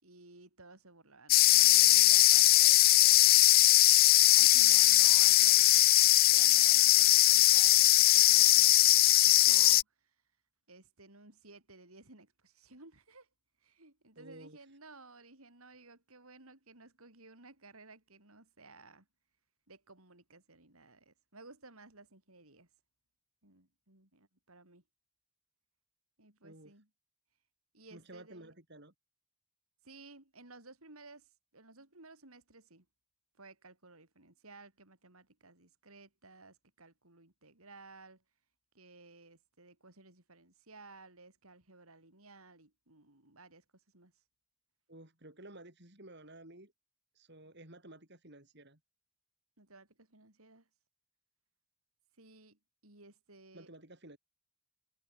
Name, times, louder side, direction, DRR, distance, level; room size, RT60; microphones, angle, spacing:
voice 1, 0.0-3.5 4.3-10.2 10.7-13.3 13.6-19.1 19.7-22.7 23.4-24.8 26.2-26.9 27.7-28.5 29.8-32.9 33.4-38.2 38.7-44.2 49.6-50.7 52.2-53.7, right 3 dB, 75° right, 5.2 m, -56 dB
sound 1, 1.3-9.8, left 16 dB, 40° left, 0.4 m, -21 dB
voice 2, 14.2-14.6 26.4-26.7 27.9-28.9 44.9-46.7 47.2-48.8 53.5-54.2, right 1 dB, 50° right, 5.5 m, -53 dB
head